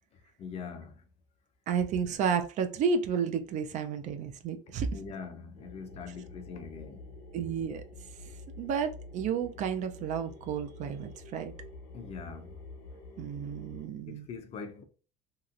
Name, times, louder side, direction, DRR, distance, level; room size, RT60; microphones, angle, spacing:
voice 1, 0.4-1.0 4.9-7.1 11.9-12.6 14.1-14.8, left 5 dB, 40° left, 0.5 m, -42 dB
voice 2, 1.7-5.0 7.3-7.8 8.6-11.5 13.2-14.3, right 6 dB, 45° right, 0.4 m, -31 dB
sound 1, 5.5-13.9, left 2 dB, 70° left, 1.2 m, -48 dB
3.0 x 2.9 x 2.4 m
cardioid pair, 135°, 17 cm